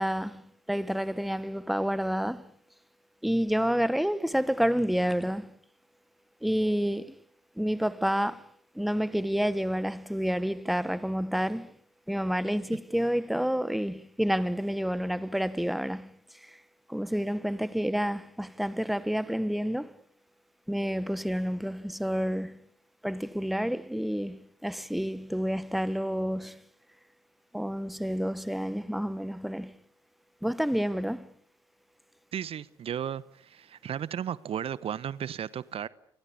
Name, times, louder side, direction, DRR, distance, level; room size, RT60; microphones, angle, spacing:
voice 1, 0.0-2.5 3.2-5.5 6.4-7.2 7.6-8.5 8.7-11.7 12.1-16.1 16.4-16.6 16.9-20.0 20.7-22.6 23.0-26.6 27.5-29.8 30.4-31.3, equal, ahead, 1.3 m, -29 dB
voice 2, 32.3-35.9, right 9 dB, 50° right, 1.0 m, -34 dB
29.5 x 25.0 x 7.0 m
hypercardioid pair, 55°, 13 cm